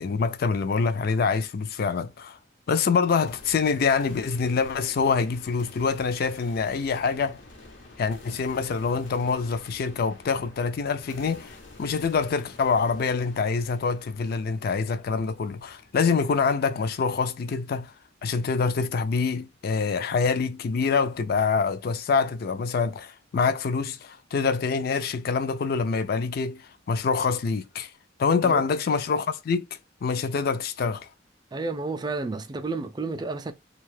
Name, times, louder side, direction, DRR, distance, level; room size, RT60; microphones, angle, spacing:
voice 1, 0.0-2.4 2.7-7.4 8.0-17.9 18.2-27.9 28.2-29.7 30.0-31.1, left 5 dB, 55° left, 0.4 m, -25 dB
sound 1, 3.3-17.2, left 2 dB, 90° left, 0.9 m, -49 dB
voice 2, 31.5-33.5, right 3 dB, 25° right, 0.4 m, -31 dB
2.6 x 2.3 x 3.2 m
head